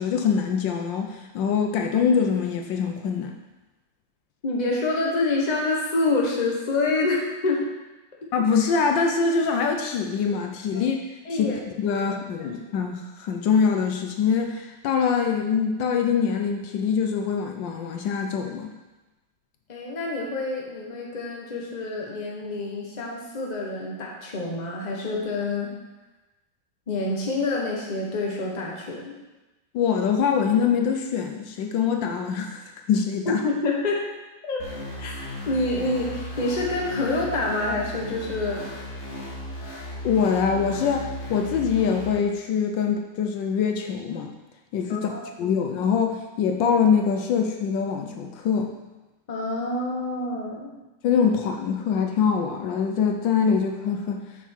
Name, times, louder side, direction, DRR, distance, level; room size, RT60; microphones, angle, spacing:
voice 1, 0.0-3.4 8.3-11.0 11.3-11.5 11.8-18.7 29.7-32.6 32.9-33.4 40.0-44.3 44.7-45.1 45.4-48.7 51.0-54.2, left 6 dB, 75° left, 4 dB, 1.4 m, -24 dB
voice 2, 4.4-7.7 10.7-10.8 11.2-11.6 11.9-12.1 12.4-12.5 19.7-25.8 26.9-29.2 33.3-34.1 34.5-34.7 35.0-35.1 35.5-38.6 44.9-45.6 49.3-50.7, left 2 dB, 25° left, -2 dB, 1.1 m, -27 dB
sound 1, 34.6-42.1, left 1 dB, 50° left, 2.1 m, -36 dB
7.0 x 6.0 x 4.5 m, 1.1 s
omnidirectional pair, 2.0 m